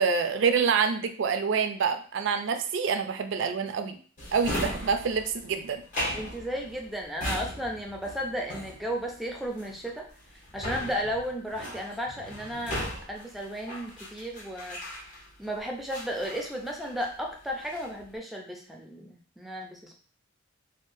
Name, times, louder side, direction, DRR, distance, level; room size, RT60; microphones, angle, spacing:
voice 1, 0.0-4.0 4.3-5.8, right 5 dB, 65° right, 6 dB, 0.4 m, -26 dB
Drawer open or close, 4.2-15.4 15.9-17.2 17.5-18.0, equal, 40° left, 1.0 m, -37 dB
voice 2, 6.1-10.1 10.5-12.8 13.1-14.8 15.4-19.9, equal, ahead, 0 dB, 0.5 m, -34 dB
3.6 x 2.2 x 2.6 m, 0.43 s
head